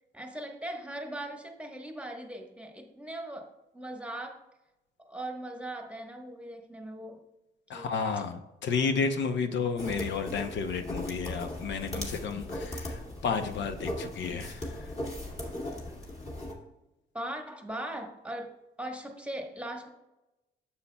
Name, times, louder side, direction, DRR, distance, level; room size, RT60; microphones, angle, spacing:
voice 1, 0.1-4.5 5.0-7.2 7.7-7.9 17.1-19.9, right 1 dB, 5° right, 3 dB, 1.1 m, -39 dB
voice 2, 7.7-14.9, left 5 dB, 65° left, 7 dB, 0.7 m, -32 dB
sound 1, 9.8-16.5, left 1 dB, 30° left, 2.1 m, -38 dB
9.5 x 7.1 x 2.2 m, 0.97 s
cardioid pair, 90°, 20 cm